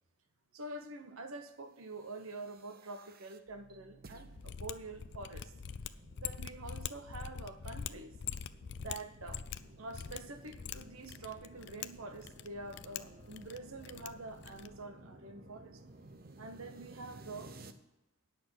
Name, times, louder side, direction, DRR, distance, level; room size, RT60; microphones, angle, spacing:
voice 1, 0.5-5.5 6.2-8.1 8.8-9.4 9.8-15.8 16.4-17.5, right 2 dB, 90° right, 8 dB, 1.0 m, -46 dB
sound 1, 1.9-17.7, right 2 dB, 45° right, 0.7 m, -56 dB
Mechanisms, 4.3-14.8, left 8 dB, 55° left, 0.4 m, -45 dB
9.4 x 6.3 x 7.8 m, 0.92 s
head